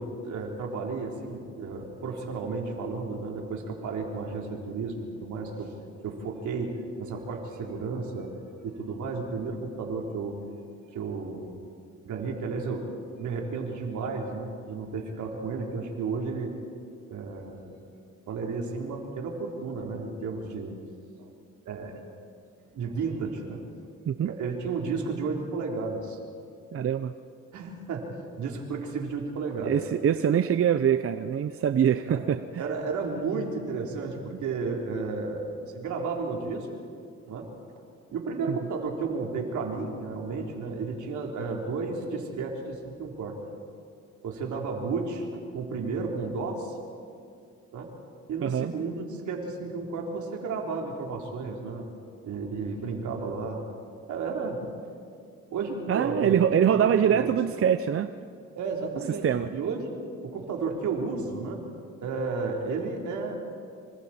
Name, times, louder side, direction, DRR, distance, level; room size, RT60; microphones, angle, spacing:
voice 1, 0.0-5.7 6.0-6.7 7.0-8.3 8.6-10.4 10.9-11.6 12.0-12.9 13.1-16.5 17.1-17.7 18.3-20.8 21.2-21.3 21.7-22.0 22.7-23.6 24.3-26.2 27.5-28.1 28.4-29.8 32.0-32.2 32.6-36.7 37.3-37.5 38.1-43.4 44.2-45.3 45.5-46.8 47.7-47.9 48.3-51.8 52.2-53.6 54.0-54.7 55.5-56.4 56.7-57.4 58.6-59.8 60.2-61.6 62.0-63.4, right 4 dB, 75° right, 0 dB, 3.8 m, -32 dB
voice 2, 26.7-27.1 29.6-32.4 38.5-38.6 48.4-48.7 55.9-58.1 59.2-59.5, right 9 dB, 50° right, 10 dB, 0.7 m, -24 dB
26.5 x 25.5 x 4.4 m, 2.4 s
cardioid pair, 90°, 30 cm